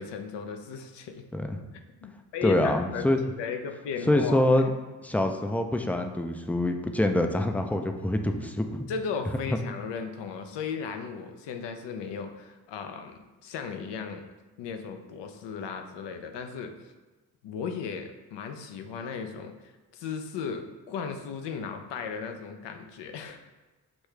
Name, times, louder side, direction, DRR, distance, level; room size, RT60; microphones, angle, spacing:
voice 1, 0.0-1.2 2.0-3.1 3.4-4.5 8.9-13.1 13.4-14.2 14.6-16.9 17.4-23.4, left 6 dB, 80° left, 6 dB, 0.6 m, -36 dB
voice 2, 2.4-3.2 4.1-4.7 5.0-8.9, left 1 dB, 5° left, 5 dB, 0.3 m, -25 dB
6.2 x 2.3 x 3.2 m, 1.2 s
supercardioid pair, 50°, 42 cm